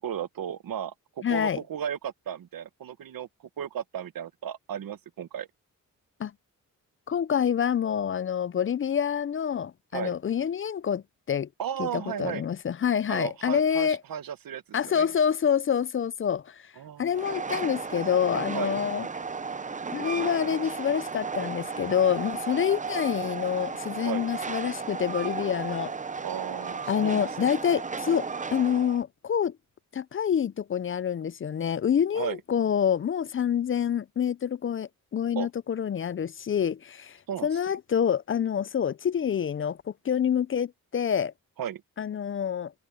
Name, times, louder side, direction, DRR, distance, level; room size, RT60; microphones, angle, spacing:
voice 1, 0.0-3.3 3.6-5.5 9.9-10.1 11.6-12.5 13.1-15.1 16.8-17.1 18.5-18.7 24.0-24.3 26.2-27.6 32.1-32.4 35.3-35.5 37.3-37.6 41.6-41.8, right 9 dB, 85° right, 1.1 m, -35 dB
voice 2, 1.2-1.6 6.2-6.3 7.1-11.5 11.8-14.0 14.7-16.6 17.0-19.1 19.9-25.9 26.9-29.5 29.9-37.2 37.4-39.8 40.0-41.3 42.0-42.7, left 8 dB, 40° left, 0.4 m, -27 dB
Train, 17.1-29.0, right 5 dB, 25° right, 0.7 m, -34 dB
cardioid pair, 90°, 33 cm